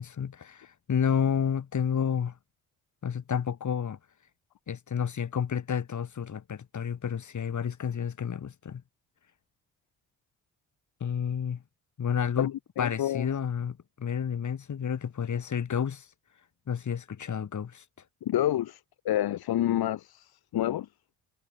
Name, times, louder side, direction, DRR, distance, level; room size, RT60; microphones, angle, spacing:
voice 1, 0.0-2.4 3.0-4.0 4.7-8.8 11.0-11.6 12.0-12.5 12.8-16.1 16.7-17.8, left 7 dB, 40° left, 2.8 m, -30 dB
voice 2, 12.8-13.3 18.2-20.9, left 12 dB, 60° left, 2.9 m, -28 dB
figure-of-eight pair, 40°, 43 cm